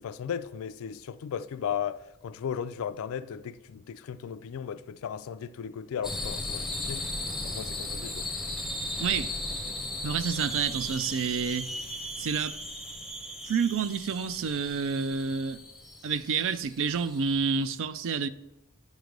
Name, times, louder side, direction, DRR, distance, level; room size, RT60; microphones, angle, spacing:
voice 1, 0.0-2.0 2.2-7.1 7.4-8.3, left 8 dB, 65° left, 0.3 m, -36 dB
sound 1, 6.0-17.7, left 1 dB, ahead, 0.7 m, -37 dB
voice 2, 9.0-9.3 10.0-11.7 12.2-12.6 13.5-15.6 16.0-18.3, right 6 dB, 60° right, 0.4 m, -29 dB
9.4 x 3.2 x 5.1 m
head